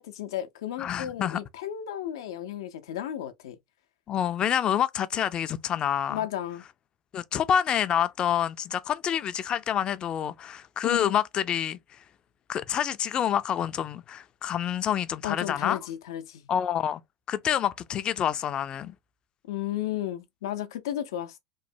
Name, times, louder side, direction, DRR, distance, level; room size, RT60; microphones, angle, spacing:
voice 1, 0.0-3.6 6.1-6.6 10.8-11.2 15.2-16.5 19.5-21.4, left 11 dB, 85° left, 0.6 m, -33 dB
voice 2, 0.8-1.4 4.1-6.2 7.1-11.8 12.5-15.8 16.5-17.0 17.3-18.9, left 9 dB, 40° left, 0.4 m, -27 dB
3.1 x 2.1 x 2.5 m
supercardioid pair, 100°, 2 cm